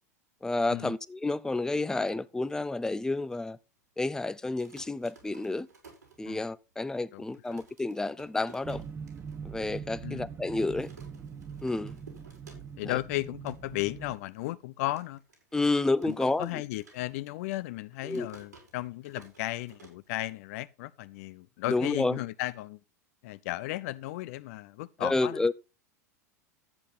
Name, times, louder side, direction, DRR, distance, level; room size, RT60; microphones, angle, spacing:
voice 1, 0.4-3.6 4.0-5.7 6.2-8.8 9.4-10.9 11.6-12.0 15.5-16.5 18.1-18.3 21.7-22.2 25.0-25.5, left 2 dB, 5° left, 0.7 m, -30 dB
sound 1, 4.4-6.7 7.0-7.1 7.3-9.4 9.8-9.9 10.1-10.4 10.8-13.0 13.2-13.6 14.1-14.2 15.0-17.4 17.7-20.6, right 4 dB, 90° right, 5.3 m, -55 dB
voice 2, 7.1-7.6 10.0-10.3 12.5-15.2 16.0-22.8 23.2-25.4, left 17 dB, 60° left, 0.7 m, -35 dB
sound 2, 8.6-14.2, right 6 dB, 30° right, 1.5 m, -42 dB
12.5 x 8.4 x 4.1 m
hypercardioid pair, 90°, 9 cm